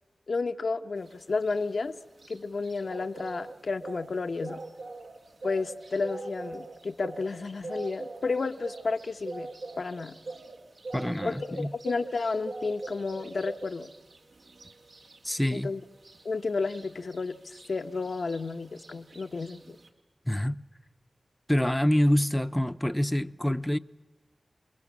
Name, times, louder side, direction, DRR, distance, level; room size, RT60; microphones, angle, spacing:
voice 1, 0.3-1.9 2.3-4.6 5.4-9.5 9.8-10.2 11.2-13.9 15.5-15.8 16.2-19.8, left 4 dB, 75° left, 1.0 m, -32 dB
sound 1, 1.0-19.9, right 3 dB, 85° right, 2.6 m, -44 dB
voice 2, 10.9-11.7 15.2-15.7 20.3-20.6 21.5-23.8, equal, 10° left, 0.7 m, -26 dB
29.0 x 21.0 x 7.4 m
cardioid pair, 45°, 0 cm